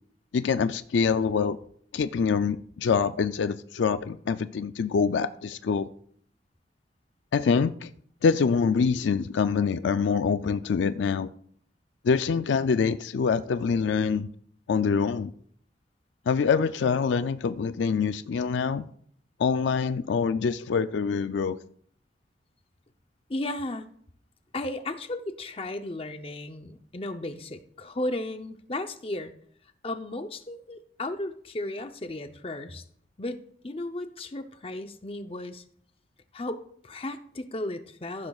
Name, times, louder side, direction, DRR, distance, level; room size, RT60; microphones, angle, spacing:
voice 1, 0.3-1.6 1.9-5.9 7.3-7.9 8.2-11.3 12.0-14.3 14.7-15.3 16.3-18.8 19.4-21.6, left 5 dB, 75° left, 12 dB, 0.4 m, -25 dB
voice 2, 23.3-23.9 24.5-29.3 29.8-32.8 33.2-35.6 36.3-38.3, left 1 dB, 30° left, 8 dB, 0.7 m, -35 dB
14.5 x 11.5 x 2.4 m, 0.63 s
head